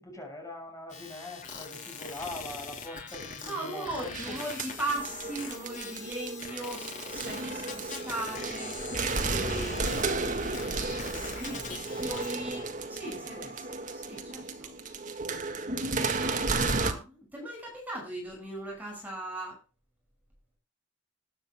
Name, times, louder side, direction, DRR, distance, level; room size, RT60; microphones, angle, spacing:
voice 1, 0.0-4.5 11.5-12.7 13.2-13.5, left 1 dB, 15° left, 2 dB, 5.9 m, -43 dB
sound 1, 0.9-12.3, left 5 dB, 40° left, 3.7 m, -42 dB
voice 2, 3.4-14.8 16.2-19.6, right 1 dB, 10° right, 0 dB, 5.7 m, -39 dB
sound 2, 4.1-16.9, right 3 dB, 45° right, 1.8 m, -33 dB
21.0 x 10.0 x 2.2 m, 0.28 s
head